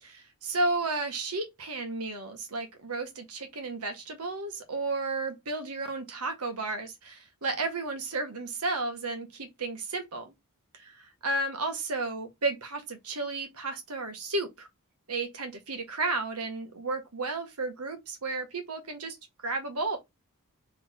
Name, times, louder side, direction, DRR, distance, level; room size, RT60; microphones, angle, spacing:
voice 1, 0.0-10.3 10.7-14.7 15.1-19.2 19.4-20.0, right 3 dB, 80° right, 1.4 m, -33 dB
4.2 x 3.4 x 3.6 m
head